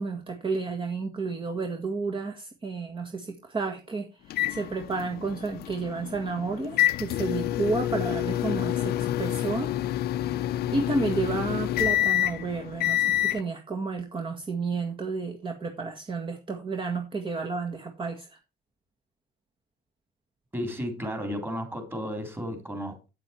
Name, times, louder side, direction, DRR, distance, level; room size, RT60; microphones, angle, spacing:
voice 1, 0.0-9.7 10.5-18.4, right 3 dB, 30° right, 1.8 m, -31 dB
sound 1, 4.3-13.4, left 13 dB, 70° left, 0.7 m, -28 dB
voice 2, 20.5-23.1, equal, 15° right, 3.8 m, -33 dB
9.0 x 7.8 x 4.5 m
cardioid pair, 110°, 17 cm